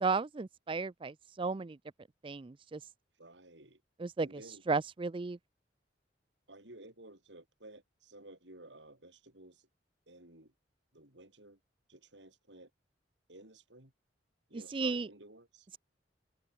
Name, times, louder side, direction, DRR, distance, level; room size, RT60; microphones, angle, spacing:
voice 1, 0.0-1.8 2.2-2.8 4.0-4.3 4.7-5.4 14.5-15.1, right 4 dB, 30° right, 0.4 m, -34 dB
voice 2, 3.2-3.8 4.2-4.6 6.5-9.7 10.1-10.5 10.9-11.6 11.9-12.7 13.3-13.9 14.5-15.7, right 1 dB, 75° right, 7.5 m, -54 dB
open air
head